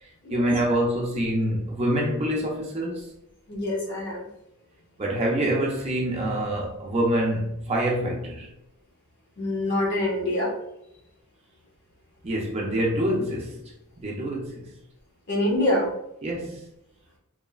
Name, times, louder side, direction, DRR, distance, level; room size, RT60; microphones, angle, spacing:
voice 1, 0.0-3.1 5.0-8.5 12.2-14.7 16.2-16.6, right 1 dB, 30° right, 0.4 m, -26 dB
voice 2, 3.5-4.3 6.3-6.4 9.4-10.5 15.3-15.9, left 1 dB, 50° left, 0.8 m, -25 dB
3.1 x 2.0 x 2.3 m
head